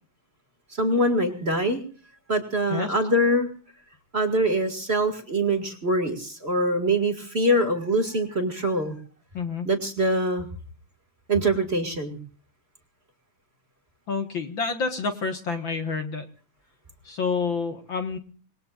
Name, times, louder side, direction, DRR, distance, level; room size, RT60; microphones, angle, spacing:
voice 1, 0.7-1.8 2.3-3.5 4.1-8.9 9.6-10.5 11.3-12.2, right 1 dB, 25° right, 5 dB, 1.8 m, -24 dB
voice 2, 9.3-9.7 14.1-16.3 17.0-18.2, left 5 dB, 50° left, 6 dB, 1.7 m, -28 dB
26.5 x 21.0 x 2.5 m, 0.42 s
omnidirectional pair, 3.6 m